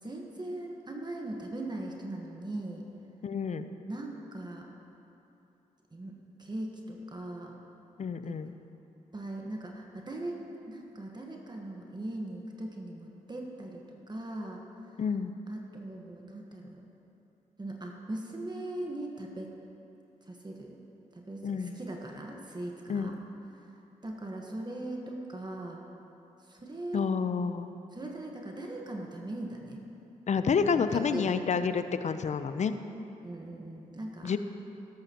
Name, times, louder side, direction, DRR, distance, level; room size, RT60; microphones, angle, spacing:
voice 1, 0.0-2.9 3.9-4.7 5.9-7.6 8.2-8.4 9.1-15.0 15.5-16.8 17.6-19.5 20.2-20.8 21.1-23.1 23.5-25.8 26.4-27.1 27.9-29.8 30.7-31.3 33.2-34.3, right 1 dB, 30° right, 0 dB, 1.4 m, -40 dB
voice 2, 3.2-3.7 8.0-8.5 15.0-15.3 21.4-21.7 22.9-23.1 26.9-27.7 30.3-32.7 34.2-34.4, left 6 dB, 50° left, 10 dB, 0.6 m, -29 dB
13.0 x 12.5 x 3.0 m, 3.0 s
supercardioid pair, 50°, 15 cm